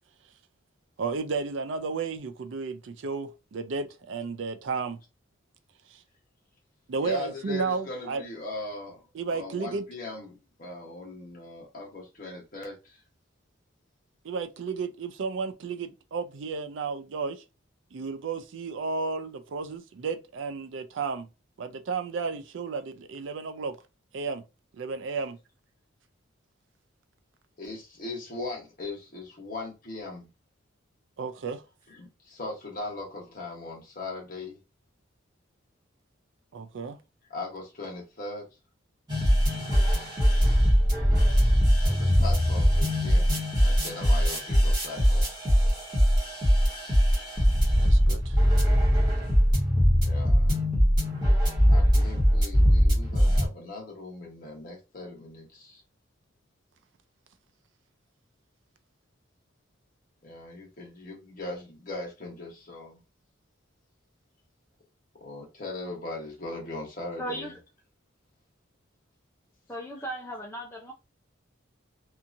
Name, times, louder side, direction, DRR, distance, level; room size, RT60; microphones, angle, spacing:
voice 1, 1.0-5.0 5.9-6.0 6.9-8.3 9.1-9.8 14.2-17.4 17.9-21.3 21.6-23.8 24.1-24.4 24.7-25.4 31.2-31.6 36.5-37.0 47.8-48.4, right 4 dB, 70° right, 0.4 m, -33 dB
voice 2, 7.0-9.0 9.3-13.0 27.6-30.3 31.9-34.6 37.3-38.5 41.8-43.3 43.6-45.3 50.0-50.6 51.7-55.8 60.2-63.0 65.1-67.6 69.9-70.0, left 2 dB, 45° left, 1.1 m, -39 dB
sound 1, 39.1-53.5, equal, 20° right, 1.2 m, -21 dB
voice 3, 67.2-67.5 69.7-70.9, right 1 dB, 10° left, 0.5 m, -36 dB
2.7 x 2.4 x 2.6 m
head